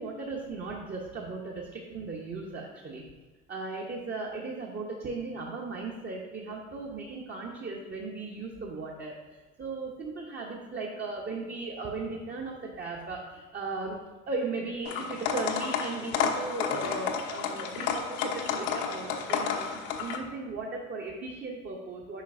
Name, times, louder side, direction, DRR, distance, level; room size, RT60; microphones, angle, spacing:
voice 1, 0.0-3.0 3.5-9.2 9.6-14.0 14.3-22.2, right 3 dB, 25° right, -1 dB, 0.9 m, -37 dB
sound 1, 14.9-20.2, left 7 dB, 60° left, 0.9 m, -31 dB
8.3 x 5.4 x 2.6 m, 1.2 s
figure-of-eight pair, 65°, 41 cm